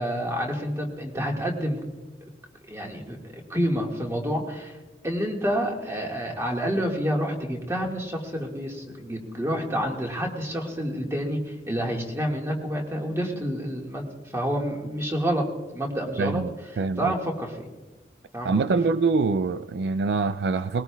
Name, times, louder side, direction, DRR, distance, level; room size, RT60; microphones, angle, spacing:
voice 1, 0.0-1.8 2.7-4.8 5.0-14.1 14.3-15.4 15.7-16.4 17.0-17.7 18.3-18.5, equal, 15° right, 0 dB, 1.8 m, -28 dB
voice 2, 16.2-17.1 18.4-20.8, right 4 dB, 65° right, 13 dB, 0.3 m, -25 dB
20.5 x 18.0 x 2.4 m, 1.2 s
head